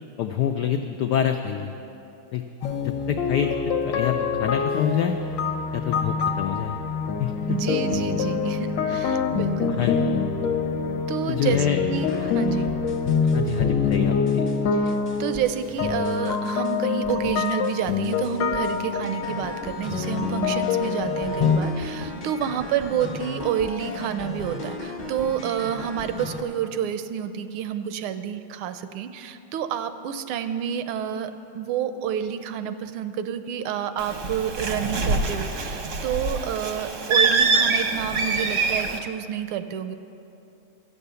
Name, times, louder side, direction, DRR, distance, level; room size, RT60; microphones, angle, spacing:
voice 1, 0.2-1.7 2.3-2.4 2.8-3.6 3.9-5.2 5.7-6.8 7.2-7.3 9.7-10.2 11.3-11.8 13.3-14.4, left 9 dB, 90° left, 5 dB, 0.9 m, -26 dB
sound 1, 2.6-21.6, left 5 dB, 65° left, 1.3 m, -25 dB
voice 2, 7.5-9.7 11.1-12.7 14.7-39.9, right 9 dB, 80° right, 10 dB, 1.4 m, -29 dB
sound 2, 11.9-13.6 13.9-14.6 14.9-16.8 17.0-17.8 18.0-26.4, left 1 dB, 40° left, 0.6 m, -36 dB
Bird, 34.0-39.0, right 4 dB, 55° right, 0.8 m, -24 dB
12.5 x 8.3 x 6.8 m, 2.8 s
omnidirectional pair, 2.4 m